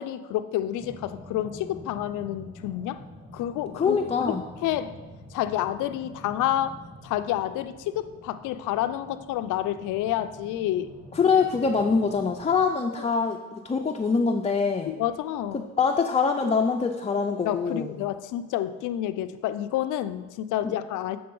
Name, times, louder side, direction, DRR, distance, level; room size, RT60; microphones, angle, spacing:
voice 1, 0.0-3.0 3.3-5.0 5.3-10.9 13.0-13.1 14.9-15.7 17.5-21.2, left 12 dB, 85° left, 12 dB, 0.5 m, -29 dB
sound 1, 0.8-12.6, left 1 dB, 20° right, 1.9 m, -46 dB
voice 2, 3.7-4.4 11.1-14.9 15.5-17.9 20.6-20.7, left 5 dB, 20° left, 2 dB, 0.4 m, -24 dB
7.7 x 3.9 x 5.3 m, 1.2 s
cardioid pair, 90°, 30 cm